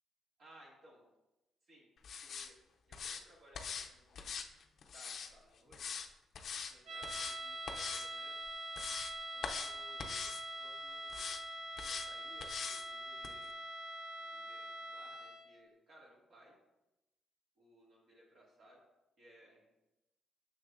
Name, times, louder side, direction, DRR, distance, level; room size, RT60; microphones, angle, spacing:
voice 1, 0.4-1.1 1.6-1.9 2.2-2.6 2.9-4.4 4.9-5.8 6.7-8.4 9.3-10.3 10.6-11.3 11.8-13.5 14.2-16.5 17.6-18.8 19.2-19.7, equal, 60° right, -4 dB, 2.1 m, -62 dB
sound 1, 2.0-2.5 2.9-3.2 3.5-3.9 4.2-5.3 5.7-6.1 6.3-6.7 7.0-7.4 7.7-8.1 8.5-9.1 9.4-9.7 10.0-10.4 11.1-11.4 11.8-12.1 12.4-12.8 13.2-13.3, left 6 dB, 60° left, 0.5 m, -42 dB
sound 2, 6.9-15.6, right 1 dB, 75° right, 1.6 m, -44 dB
6.5 x 6.3 x 2.5 m, 0.97 s
cardioid pair, 90°, 0 cm